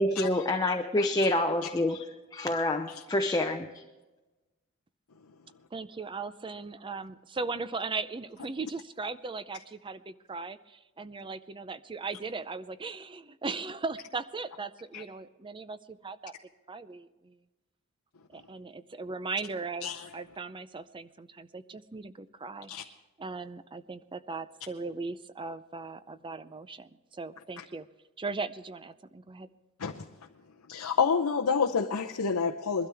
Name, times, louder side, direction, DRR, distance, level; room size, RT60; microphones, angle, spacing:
voice 1, 0.0-2.0 2.3-3.8, left 1 dB, 15° left, 0.7 m, -27 dB
voice 2, 5.7-16.3 16.7-17.4 18.3-22.9 23.2-27.9 28.2-29.5, right 4 dB, 20° right, 0.5 m, -38 dB
voice 3, 30.7-32.9, left 5 dB, 85° left, 0.7 m, -28 dB
21.5 x 12.5 x 3.4 m
head